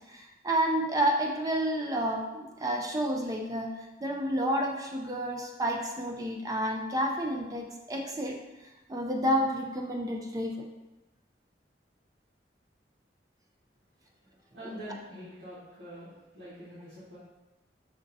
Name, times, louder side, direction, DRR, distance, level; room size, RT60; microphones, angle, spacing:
voice 1, 0.1-8.4 8.9-10.6, right 1 dB, 20° right, 1 dB, 0.4 m, -30 dB
voice 2, 14.5-17.2, equal, 80° right, -12 dB, 1.3 m, -45 dB
6.2 x 2.6 x 2.6 m, 1.0 s
head